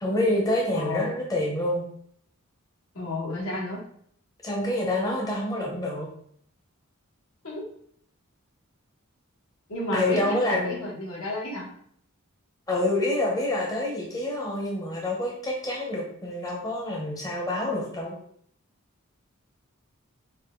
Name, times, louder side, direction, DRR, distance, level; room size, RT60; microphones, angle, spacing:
voice 1, 0.0-1.8 4.4-6.1 9.9-10.8 12.7-18.2, left 1 dB, 15° left, -1 dB, 0.8 m, -27 dB
voice 2, 0.7-1.1 2.9-3.8 7.4-7.7 9.7-11.7, left 1 dB, 75° left, -4 dB, 1.7 m, -31 dB
5.6 x 2.5 x 3.7 m, 0.64 s
head